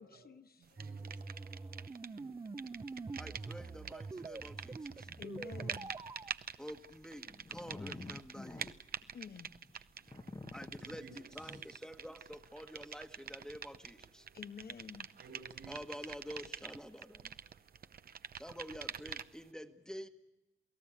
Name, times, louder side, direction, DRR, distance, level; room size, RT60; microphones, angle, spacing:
voice 1, 0.0-0.8 5.2-5.9 9.1-9.5 14.3-15.1, left 7 dB, 55° left, 1.2 m, -50 dB
sound 1, 0.8-6.3, right 3 dB, 20° right, 0.8 m, -45 dB
sound 2, 0.8-2.2 2.5-19.5, right 7 dB, 50° right, 0.9 m, -47 dB
voice 2, 0.8-1.4 2.2-2.3 2.7-2.9 8.5-8.6 10.8-11.7 15.2-16.1, right 4 dB, 75° right, 6.6 m, -57 dB
voice 3, 3.2-5.1 6.6-8.7 9.7-9.8 10.5-14.3 15.7-17.3 18.4-20.1, equal, 5° left, 1.4 m, -48 dB
sound 3, 5.1-5.5 5.9-6.2 6.7-11.6, left 3 dB, 20° left, 1.0 m, -49 dB
28.0 x 17.5 x 8.6 m
cardioid pair, 85°, 20 cm